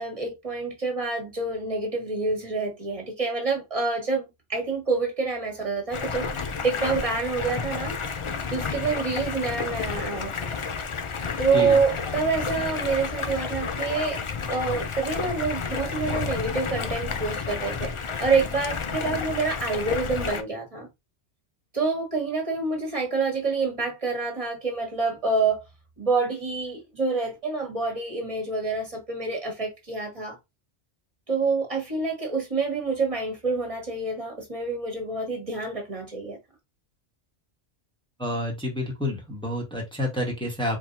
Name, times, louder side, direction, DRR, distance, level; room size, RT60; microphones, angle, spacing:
voice 1, 0.0-8.0 8.5-10.6 11.4-17.9 18.2-20.9 21.7-25.6 26.0-30.4 31.3-36.4, right 4 dB, 30° right, 1.7 m, -27 dB
Stream, 5.9-20.4, left 5 dB, 45° left, 0.4 m, -31 dB
voice 2, 38.2-40.8, left 1 dB, 5° left, 1.4 m, -29 dB
4.6 x 3.6 x 2.7 m
omnidirectional pair, 1.2 m